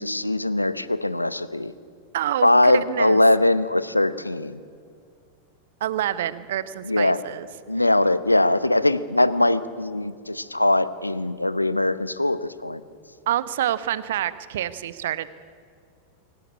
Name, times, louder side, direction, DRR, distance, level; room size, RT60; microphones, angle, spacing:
voice 1, 0.0-1.7 2.4-4.6 6.8-7.2 7.7-12.8, left 2 dB, 85° left, 16 dB, 0.9 m, -21 dB
voice 2, 2.1-3.2 5.8-7.5 13.3-15.3, right 12 dB, 60° right, 16 dB, 0.9 m, -27 dB
23.5 x 18.0 x 9.7 m, 2.2 s
figure-of-eight pair, 90°, 0 cm